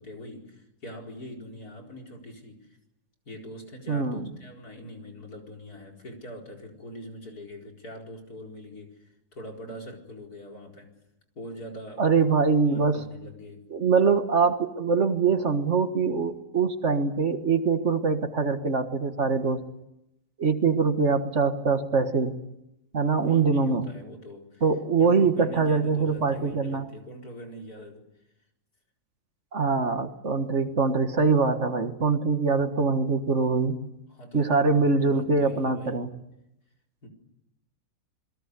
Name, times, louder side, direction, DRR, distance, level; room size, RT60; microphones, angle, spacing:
voice 1, 0.0-2.8 3.2-10.9 11.3-12.3 12.7-13.7 23.2-24.6 25.0-28.0 34.1-36.0 37.0-37.1, equal, 80° left, 1 dB, 5.0 m, -43 dB
voice 2, 3.9-4.3 12.0-13.0 13.7-19.6 20.4-22.3 22.9-23.9 24.6-26.9 29.5-33.8 34.3-36.1, right 4 dB, 50° right, 8 dB, 1.8 m, -23 dB
28.5 x 22.0 x 8.3 m, 0.87 s
omnidirectional pair, 1.6 m